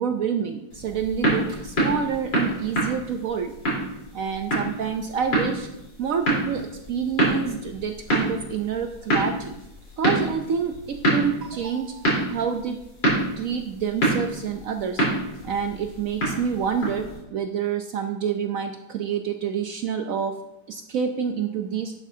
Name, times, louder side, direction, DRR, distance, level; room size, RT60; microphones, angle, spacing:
voice 1, 0.0-3.5 4.1-5.7 6.0-9.5 10.0-12.8 13.4-15.1 15.4-20.4 20.7-21.9, right 7 dB, 85° right, 6 dB, 0.7 m, -28 dB
sound 1, 0.7-17.2, right 1 dB, 60° left, 4.5 m, -27 dB
11.5 x 9.4 x 2.8 m, 0.90 s
omnidirectional pair, 2.1 m